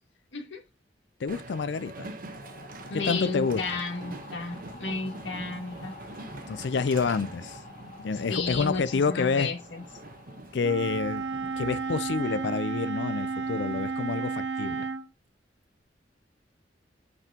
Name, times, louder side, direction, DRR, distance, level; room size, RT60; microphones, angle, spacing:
voice 1, 1.2-2.1 2.9-3.8 6.5-7.6 8.0-9.5 10.5-11.2 11.6-14.9, left 5 dB, 70° left, 0.4 m, -28 dB
Train, 1.3-13.8, right 2 dB, 50° right, 1.0 m, -44 dB
sound 1, 2.2-11.3, left 3 dB, 50° left, 2.4 m, -50 dB
voice 2, 2.9-5.9 8.3-9.8, left 3 dB, 85° left, 1.9 m, -33 dB
Wind instrument woodwind instrument, 10.6-15.1, right 4 dB, 85° right, 0.6 m, -32 dB
8.2 x 5.4 x 2.9 m
head